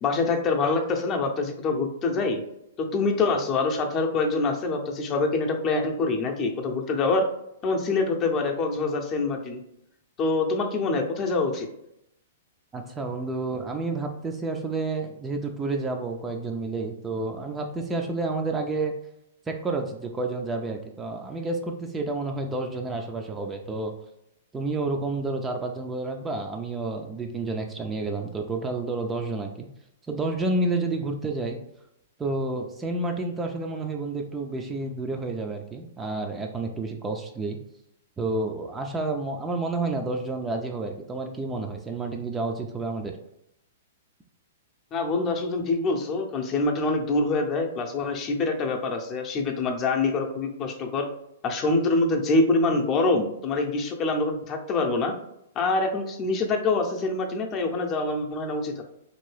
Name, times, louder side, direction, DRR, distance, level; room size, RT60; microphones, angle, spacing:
voice 1, 0.0-2.4 2.8-7.3 7.6-9.6 10.2-11.7 44.9-51.1 51.4-55.1 55.6-58.8, left 3 dB, 30° left, 3 dB, 0.6 m, -25 dB
voice 2, 12.7-18.9 19.5-23.9 24.5-29.7 30.1-31.6 32.2-37.6 38.2-43.1, right 3 dB, 15° right, 3 dB, 0.3 m, -30 dB
2.9 x 2.7 x 3.2 m, 0.81 s
hypercardioid pair, 120°, 0 cm